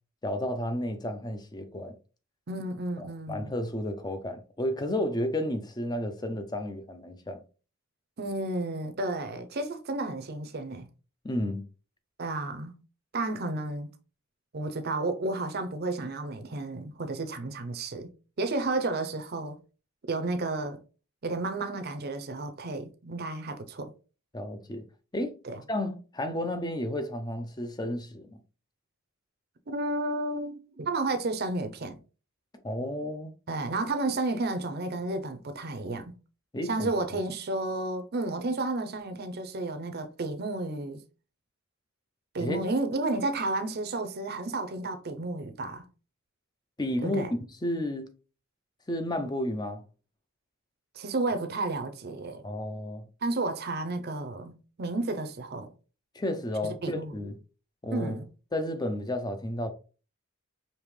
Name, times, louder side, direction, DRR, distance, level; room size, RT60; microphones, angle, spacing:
voice 1, 0.2-1.9 3.0-7.4 11.2-11.7 24.3-24.8 25.1-25.3 25.7-28.4 32.6-33.3 36.5-36.9 42.4-42.6 46.8-47.2 47.6-48.1 48.9-49.8 52.4-53.1 56.1-57.3 57.8-58.2 58.5-59.7, left 1 dB, 20° left, 0.5 m, -32 dB
voice 2, 2.5-3.5 8.2-10.9 12.2-12.8 13.1-13.9 14.5-18.1 18.4-19.6 20.1-20.8 21.2-23.9 25.4-25.6 29.7-32.0 33.5-36.1 36.7-41.0 42.3-45.8 47.0-47.3 50.9-52.4 53.2-55.7 56.8-57.1 57.9-58.3, right 2 dB, 45° right, 0.6 m, -32 dB
5.2 x 2.9 x 3.2 m
head